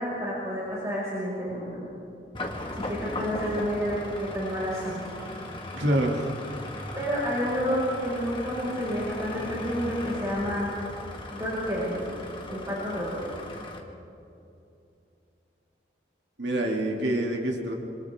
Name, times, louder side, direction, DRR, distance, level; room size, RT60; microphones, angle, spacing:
voice 1, 0.0-1.9 2.7-5.1 6.9-10.7 11.3-12.0 12.5-13.2, equal, 20° right, -8 dB, 5.6 m, -30 dB
sound 1, 2.3-13.8, left 1 dB, 30° left, 1.8 m, -38 dB
voice 2, 5.7-6.3 16.4-17.7, right 1 dB, 90° right, 0 dB, 2.7 m, -26 dB
26.5 x 26.5 x 3.7 m, 2.7 s
head